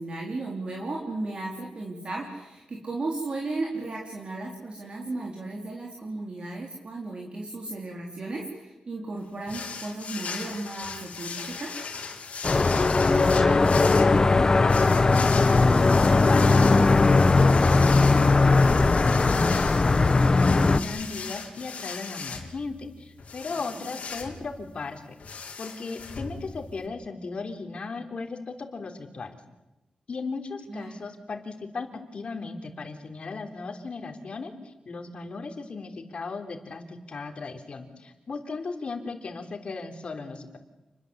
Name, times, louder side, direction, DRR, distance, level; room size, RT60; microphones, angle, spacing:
voice 1, 0.0-11.7 23.8-23.9 30.7-31.1, right 2 dB, 45° right, -1 dB, 4.1 m, -35 dB
sound 1, 9.5-26.9, left 5 dB, 75° left, 4.2 m, -38 dB
sound 2, 12.4-20.8, left 3 dB, 30° left, 1.1 m, -19 dB
voice 2, 13.1-15.7 16.0-17.1 17.8-18.4 18.7-25.0 25.3-29.4 30.1-40.6, left 4 dB, 50° left, 6 dB, 3.7 m, -36 dB
29.0 x 22.0 x 8.2 m, 1.0 s
wide cardioid pair, 135°, 2 cm